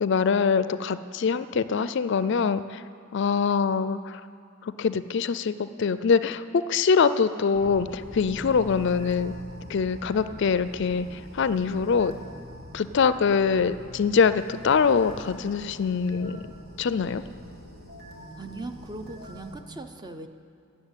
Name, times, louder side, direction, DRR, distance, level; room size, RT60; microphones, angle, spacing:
voice 1, 0.0-2.8 3.1-4.2 4.6-9.3 9.7-12.1 12.7-16.5 16.8-17.2, left 5 dB, 60° left, 14 dB, 0.4 m, -24 dB
sound 1, 7.5-19.6, left 1 dB, 50° right, 2.3 m, -44 dB
voice 2, 18.4-20.3, right 2 dB, 20° right, 6 dB, 0.7 m, -39 dB
15.0 x 7.3 x 8.9 m, 2.6 s
head